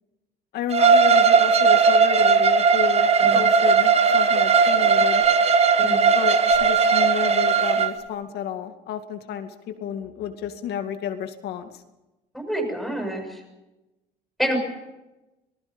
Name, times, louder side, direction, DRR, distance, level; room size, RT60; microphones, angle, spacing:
voice 1, 0.5-3.1 3.3-5.2 6.1-11.7, left 9 dB, 75° left, 6 dB, 2.3 m, -31 dB
Bowed string instrument, 0.7-7.9, right 5 dB, 40° right, 1.4 m, -17 dB
voice 2, 12.3-13.4 14.4-14.6, right 1 dB, ahead, 2 dB, 6.8 m, -27 dB
26.5 x 19.0 x 5.4 m, 1.0 s
cardioid pair, 110°, 17 cm